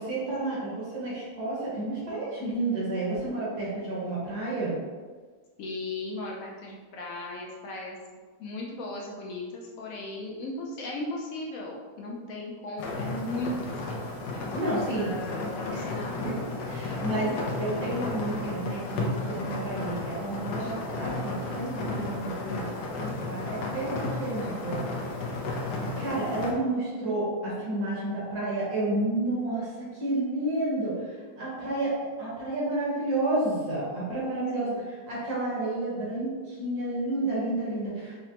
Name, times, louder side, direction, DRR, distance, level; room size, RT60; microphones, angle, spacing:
voice 1, 0.0-4.8 14.5-15.2 15.7-15.9 16.3-16.4 16.7-22.7 22.9-24.8 26.0-38.1, right 2 dB, 70° right, -7 dB, 1.8 m, -31 dB
voice 2, 5.6-8.0 8.4-14.0 14.3-16.5 20.6-20.7 34.5-34.8, left 2 dB, 65° left, -2 dB, 0.9 m, -37 dB
sound 1, 12.8-26.5, left 2 dB, 85° left, 1.2 m, -33 dB
4.9 x 2.1 x 2.8 m, 1.5 s
omnidirectional pair, 1.7 m